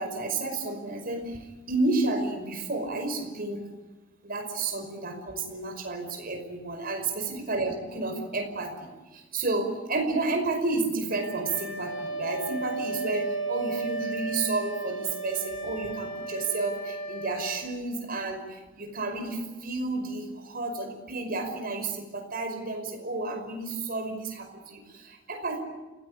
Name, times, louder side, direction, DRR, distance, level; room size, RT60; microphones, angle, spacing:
voice 1, 0.0-3.6 4.2-7.0 7.5-25.6, right 3 dB, 50° right, 5 dB, 5.4 m, -31 dB
Wind instrument woodwind instrument, 11.1-17.6, right 3 dB, 75° left, 7.2 m, -34 dB
29.5 x 17.0 x 8.7 m, 1.2 s
head